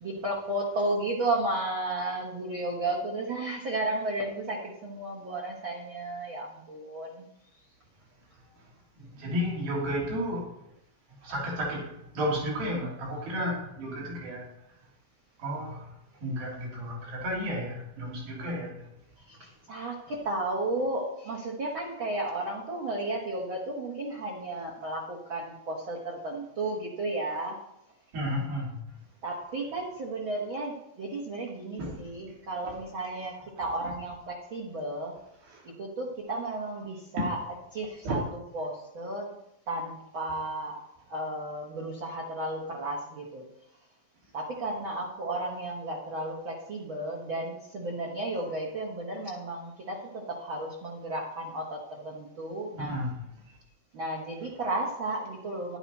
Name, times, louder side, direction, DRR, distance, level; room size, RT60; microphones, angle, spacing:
voice 1, 0.0-7.2 19.3-27.6 29.2-35.2 35.6-37.4 37.7-38.2 38.5-39.4 39.7-40.8 41.1-43.5 44.3-53.0 53.9-55.8, right 2 dB, 50° right, -3 dB, 1.6 m, -33 dB
voice 2, 9.0-10.5 11.2-14.5 15.4-15.9 16.2-18.9 28.1-28.8 31.8-32.0 35.5-35.6 37.2-37.3 38.0-38.2 52.8-53.2, equal, 75° right, -4 dB, 5.2 m, -32 dB
11.0 x 11.0 x 4.2 m, 0.82 s
omnidirectional pair, 4.2 m